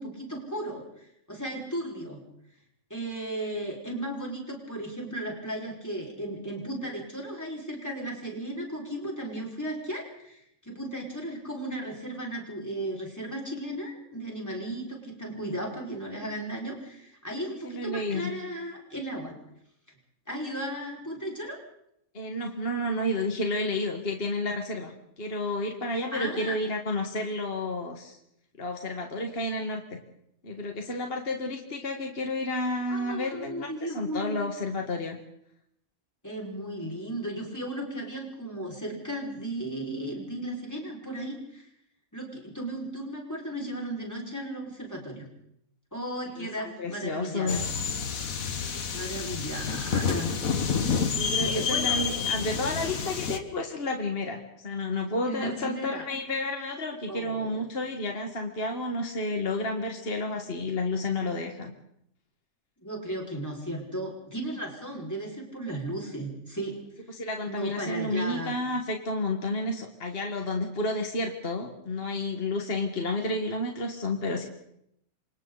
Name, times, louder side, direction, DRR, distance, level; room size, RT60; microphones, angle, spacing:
voice 1, 0.0-2.2 2.9-19.4 20.3-21.6 26.1-26.6 32.9-34.4 36.2-41.7 42.1-45.2 45.9-47.6 48.9-50.3 51.1-52.2 55.2-56.0 57.1-57.5 62.8-66.8 67.5-68.6, right 1 dB, 10° left, -2 dB, 5.5 m, -35 dB
voice 2, 17.6-18.3 22.1-28.2 28.6-30.0 30.4-35.2 46.4-47.7 51.1-61.7 67.1-74.5, left 2 dB, 40° left, 2 dB, 2.1 m, -31 dB
sound 1, 47.5-53.4, left 6 dB, 70° left, 1.9 m, -29 dB
28.5 x 26.0 x 4.2 m, 0.74 s
omnidirectional pair, 1.5 m